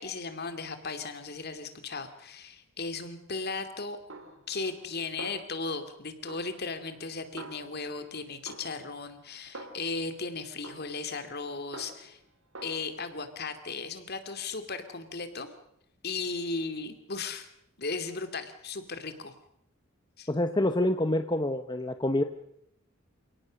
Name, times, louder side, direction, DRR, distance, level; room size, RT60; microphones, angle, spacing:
voice 1, 0.0-4.0 4.5-12.2 12.6-15.5 16.0-17.5 17.8-19.3 20.2-20.3, left 4 dB, 50° left, 8 dB, 2.8 m, -36 dB
Snare drum, 4.1-4.9 5.2-5.9 6.3-8.1 8.5-10.1 10.6-12.2 12.5-12.8, right 2 dB, 75° right, 3.5 m, -47 dB
voice 2, 20.3-22.2, left 1 dB, 20° left, 7 dB, 1.0 m, -27 dB
28.5 x 18.0 x 6.6 m, 0.74 s
head